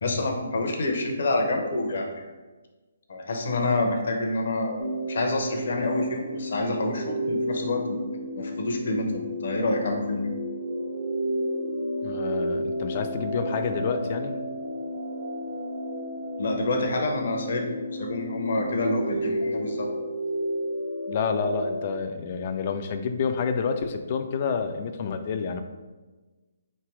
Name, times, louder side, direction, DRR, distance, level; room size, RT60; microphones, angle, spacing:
voice 1, 0.0-2.3 3.1-4.8 5.1-8.0 8.3-10.3 16.4-17.7 18.0-19.9, left 2 dB, 60° left, 2 dB, 0.7 m, -27 dB
sound 1, 4.8-21.8, equal, 90° right, 0.9 m, -32 dB
voice 2, 12.0-14.3 21.1-25.6, left 5 dB, 40° left, 7 dB, 0.4 m, -28 dB
3.3 x 2.9 x 4.4 m, 1.2 s
figure-of-eight pair, 140°, 0 cm